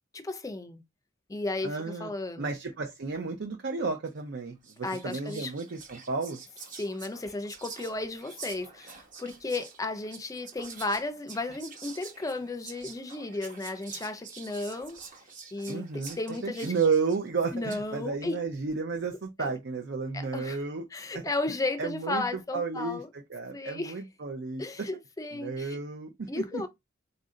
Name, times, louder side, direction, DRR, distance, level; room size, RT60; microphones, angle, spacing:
voice 1, 0.1-0.8 1.3-2.5 4.8-5.5 6.8-15.0 15.5-16.7 17.5-18.4 19.4-19.5 20.1-20.6 20.9-23.1 23.5-23.9 24.6-25.8 26.3-26.7, left 2 dB, 20° left, 0.4 m, -34 dB
voice 2, 1.6-2.1 2.4-6.4 15.7-20.9 21.1-21.2 21.8-24.9 25.3-26.7, right 4 dB, 65° right, 0.6 m, -32 dB
Whispering, 4.1-4.3 4.6-17.9, right 5 dB, 45° right, 1.0 m, -47 dB
4.2 x 2.6 x 3.7 m
head